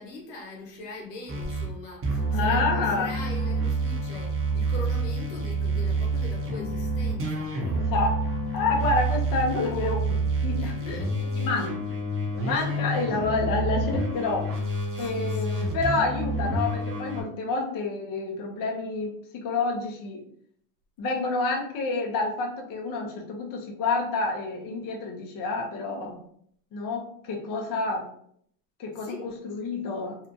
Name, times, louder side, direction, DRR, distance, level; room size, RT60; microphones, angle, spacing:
voice 1, 0.0-7.6 10.6-11.5 12.2-12.9 14.9-15.7 29.0-29.3, left 2 dB, 80° left, 1.0 m, -42 dB
sound 1, 1.3-1.7 2.0-17.2, right 2 dB, 25° right, 0.7 m, -28 dB
sound 2, 1.4-14.8, left 5 dB, 80° right, 1.0 m, -45 dB
voice 2, 2.3-3.1 7.7-8.2 8.5-11.1 11.4-11.9 12.3-14.5 15.0-20.2 21.0-26.2 26.7-28.1 28.8-30.3, left 3 dB, 45° left, 0.7 m, -29 dB
2.8 x 2.1 x 2.6 m
hypercardioid pair, 85°, 49 cm